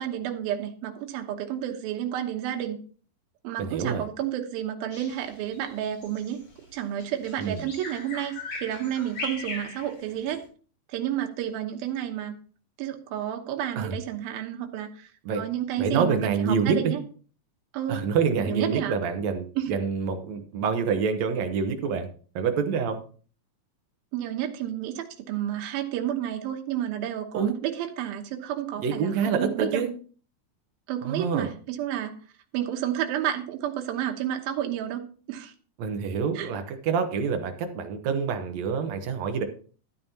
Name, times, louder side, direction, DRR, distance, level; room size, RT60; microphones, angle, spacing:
voice 1, 0.0-2.8 3.4-6.4 6.7-10.5 10.9-12.4 12.8-17.0 17.7-18.0 18.5-19.0 19.6-19.7 24.1-29.8 30.9-32.2 32.5-35.5 36.4-36.5, right 11 dB, 85° right, 4 dB, 2.9 m, -31 dB
voice 2, 3.6-4.0 7.4-7.6 13.8-14.0 15.3-15.4 15.8-16.9 17.9-22.1 22.4-23.0 27.3-27.5 28.8-29.9 31.1-31.5 35.8-39.4, right 6 dB, 65° right, 6 dB, 1.9 m, -27 dB
Bird vocalization bird call bird song, 4.9-10.4, left 3 dB, 80° left, 5.8 m, -39 dB
12.5 x 9.4 x 2.8 m, 0.41 s
omnidirectional pair, 4.1 m